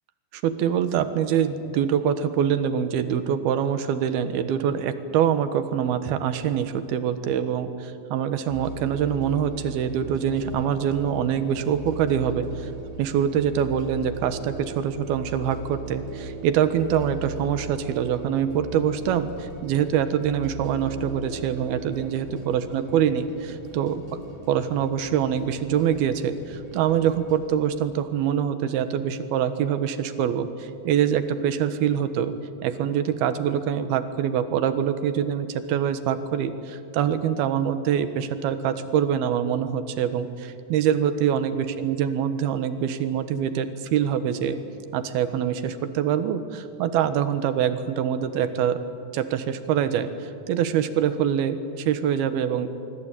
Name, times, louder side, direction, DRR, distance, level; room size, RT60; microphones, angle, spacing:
voice 1, 0.3-12.7 13.0-24.0 24.5-32.3 32.6-44.6 44.9-48.8 49.1-52.7, right 9 dB, 85° right, 11 dB, 3.2 m, -24 dB
sound 1, 8.5-27.4, right 3 dB, 65° right, 7.1 m, -39 dB
24.0 x 24.0 x 8.9 m, 2.5 s
omnidirectional pair, 4.3 m